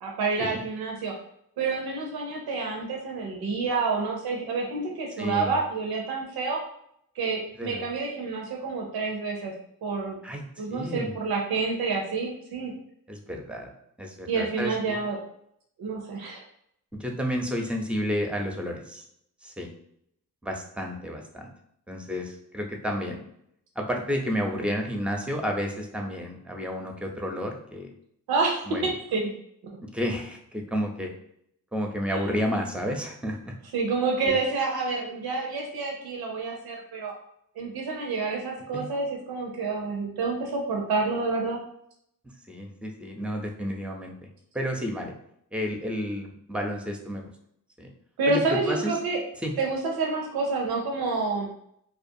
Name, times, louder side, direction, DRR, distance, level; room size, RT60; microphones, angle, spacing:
voice 1, 0.0-1.1 1.6-6.6 7.2-9.5 9.8-10.2 10.6-12.7 14.3-15.2 15.8-16.4 28.3-29.2 32.1-32.3 33.7-37.1 37.6-41.6 48.2-49.2 49.6-51.5, right 4 dB, 90° right, 0 dB, 0.5 m, -28 dB
voice 2, 5.2-5.5 7.6-7.8 10.2-11.1 13.1-13.7 14.0-15.0 16.9-19.1 19.4-19.7 20.4-21.5 21.9-23.2 23.8-27.9 28.7-28.9 29.8-31.1 31.7-33.5 34.2-34.4 38.7-38.9 42.5-44.3 44.5-45.1 45.5-47.3 47.8-47.9 48.3-48.9 49.4-49.5, equal, 5° right, 2 dB, 0.5 m, -31 dB
2.4 x 2.3 x 2.6 m, 0.72 s
cardioid pair, 50°, 36 cm